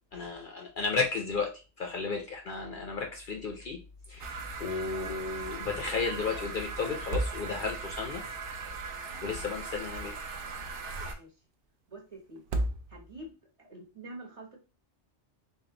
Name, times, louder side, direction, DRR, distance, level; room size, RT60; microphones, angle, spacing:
voice 1, 0.1-1.5 1.8-3.8 4.1-8.2 9.2-10.1 11.0-11.1, left 4 dB, 55° left, 2 dB, 0.7 m, -33 dB
sound 1, 4.1-4.6 4.9-5.0 6.9-7.9 9.6-10.5 12.4-13.3, right 1 dB, 60° right, 0.7 m, -35 dB
sound 2, 4.2-11.2, right 4 dB, 80° right, 0.9 m, -39 dB
voice 2, 11.9-12.4 12.9-13.3 13.6-14.6, right 1 dB, 30° right, -1 dB, 1.1 m, -46 dB
3.5 x 2.4 x 3.8 m, 0.32 s
omnidirectional pair, 1.2 m